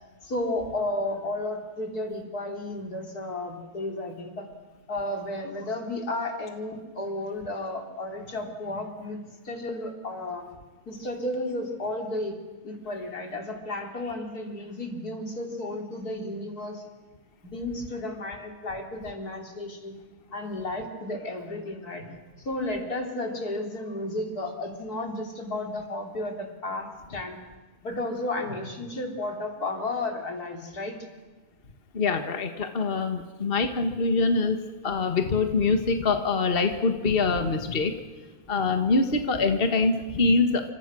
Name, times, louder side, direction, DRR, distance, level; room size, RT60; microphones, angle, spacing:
voice 1, 0.2-4.5 4.9-10.5 10.9-12.4 12.6-16.8 17.4-19.9 20.3-22.1 22.4-27.4 27.8-31.0, left 2 dB, 80° left, 3 dB, 4.1 m, -33 dB
voice 2, 31.9-34.6 34.8-37.9 38.5-40.6, left 3 dB, 40° left, 6 dB, 1.8 m, -24 dB
29.0 x 26.5 x 6.3 m, 1.3 s
omnidirectional pair, 1.6 m